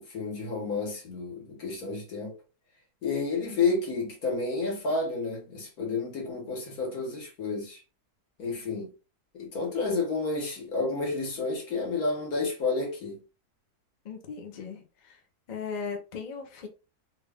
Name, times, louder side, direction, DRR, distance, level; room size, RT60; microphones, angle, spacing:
voice 1, 0.0-2.4 3.0-7.8 8.4-8.9 9.3-13.2, left 3 dB, 70° left, 1.8 m, -30 dB
voice 2, 14.0-15.2 15.5-16.7, left 5 dB, 45° left, 0.5 m, -38 dB
3.4 x 2.5 x 3.4 m
omnidirectional pair, 1.6 m